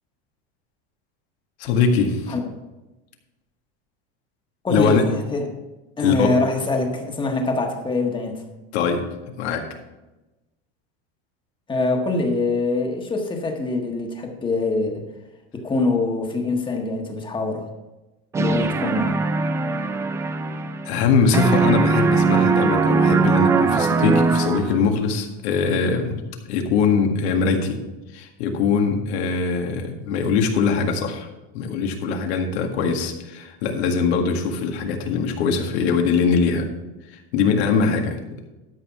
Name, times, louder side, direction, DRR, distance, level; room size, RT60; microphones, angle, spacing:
voice 1, 1.6-2.4 4.7-5.0 6.0-6.3 8.7-9.7 20.1-20.2 20.9-26.2 26.5-27.8 28.1-31.3 31.5-36.7 37.1-38.2, left 5 dB, 75° left, 3 dB, 1.9 m, -22 dB
voice 2, 4.6-5.4 6.0-8.4 11.7-15.1 15.5-17.6 18.4-19.2, left 3 dB, 15° left, 3 dB, 1.5 m, -24 dB
sound 1, 18.3-21.1 21.3-24.9, right 4 dB, 10° right, 0.3 m, -20 dB
12.5 x 5.6 x 5.7 m, 1.1 s
supercardioid pair, 145°, 33 cm